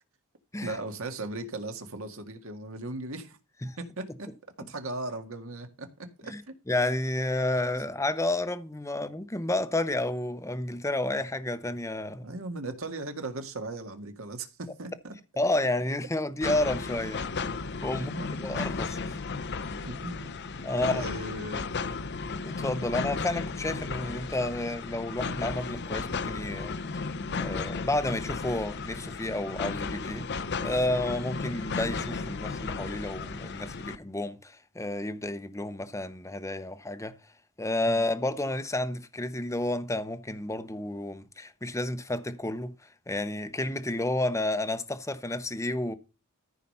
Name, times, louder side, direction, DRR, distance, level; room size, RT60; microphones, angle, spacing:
voice 1, 0.6-3.4 3.8-6.3 12.2-15.1 17.9-18.3 19.8-20.3 20.9-21.6 37.9-38.0, right 2 dB, 65° right, 1.9 m, -38 dB
voice 2, 6.7-12.3 15.4-17.2 17.8-18.1 18.4-19.2 20.6-21.0 22.4-27.0 27.3-30.3 30.6-37.1 37.6-42.7 43.1-45.9, left 2 dB, 15° left, 0.9 m, -31 dB
sound 1, 16.4-34.0, left 4 dB, 50° left, 0.7 m, -34 dB
14.0 x 5.0 x 5.5 m
head